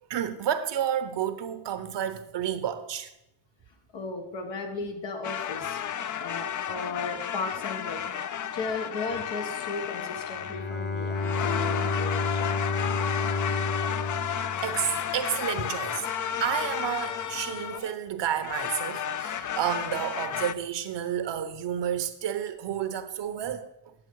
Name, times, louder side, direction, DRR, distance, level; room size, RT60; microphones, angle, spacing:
voice 1, 0.1-3.1 14.6-16.1 16.4-23.9, right 9 dB, 75° right, 1.0 m, -30 dB
voice 2, 3.9-5.8 6.2-8.1 8.5-12.4, left 4 dB, 90° left, 1.6 m, -35 dB
sound 1, 5.2-10.7 11.1-17.9 18.4-20.5, left 9 dB, 45° left, 0.5 m, -32 dB
Bowed string instrument, 10.4-15.4, left 3 dB, 25° left, 0.8 m, -30 dB
9.8 x 7.3 x 4.7 m
cardioid pair, 85°, 43 cm